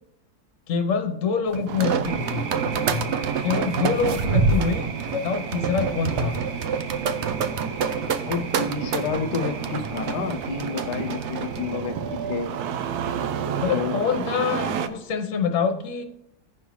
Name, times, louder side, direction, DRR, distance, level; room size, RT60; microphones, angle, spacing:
voice 1, 0.7-3.1 3.4-6.4 13.6-16.0, left 5 dB, 55° left, 5 dB, 1.2 m, -26 dB
sound 1, 1.5-11.6, right 5 dB, 60° right, 0.7 m, -27 dB
Engine starting, 1.7-14.9, right 7 dB, 80° right, 1.1 m, -32 dB
sound 2, 2.0-11.8, right 5 dB, 45° right, 1.8 m, -40 dB
voice 2, 8.3-12.5 13.7-13.9, left 6 dB, 85° left, 8 dB, 1.2 m, -30 dB
15.5 x 5.4 x 3.1 m, 0.82 s
omnidirectional pair, 1.7 m